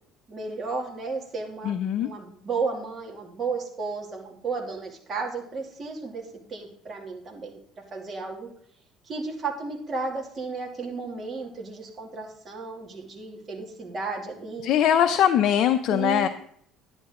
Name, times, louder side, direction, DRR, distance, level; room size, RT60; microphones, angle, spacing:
voice 1, 0.3-7.6 7.9-8.5 9.0-14.7 15.9-16.3, right 4 dB, 30° right, -1 dB, 2.6 m, -33 dB
voice 2, 1.6-2.1 14.6-16.3, left 10 dB, 55° left, 7 dB, 0.6 m, -21 dB
10.5 x 10.5 x 3.8 m, 0.65 s
cardioid pair, 140°, 0 cm